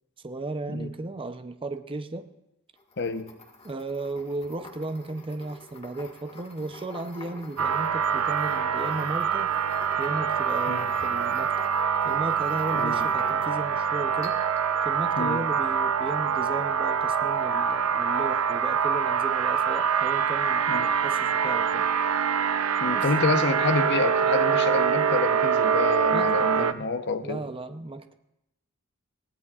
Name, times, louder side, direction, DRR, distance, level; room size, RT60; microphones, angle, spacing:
voice 1, 0.2-2.3 3.6-9.5 10.0-11.5 12.0-14.4 14.8-21.9 22.9-23.1 26.1-26.9 27.2-28.1, right 2 dB, 25° right, 9 dB, 0.6 m, -35 dB
sound 1, 2.8-13.8 14.2-14.7, left 2 dB, 30° left, 1.7 m, -47 dB
voice 2, 3.0-3.3 10.7-10.9 12.7-13.1 15.2-15.4 20.7-20.9 22.8-27.4, left 3 dB, 55° left, 8 dB, 0.8 m, -28 dB
sound 2, 7.6-26.7, right 7 dB, 80° right, 0.6 m, -25 dB
22.0 x 17.0 x 2.4 m, 0.86 s
head